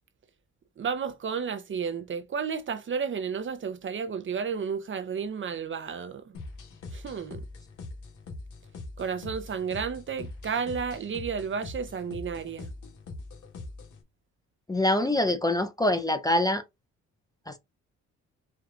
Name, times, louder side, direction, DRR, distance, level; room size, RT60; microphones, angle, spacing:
voice 1, 0.8-6.2 6.9-7.4 9.0-12.7, right 6 dB, 40° right, 0.7 m, -32 dB
sound 1, 6.3-14.0, left 2 dB, 80° left, 1.6 m, -42 dB
voice 2, 14.7-16.6 17.5-17.6, left 1 dB, 10° left, 0.6 m, -25 dB
4.6 x 2.5 x 3.7 m
cardioid pair, 90°, 30 cm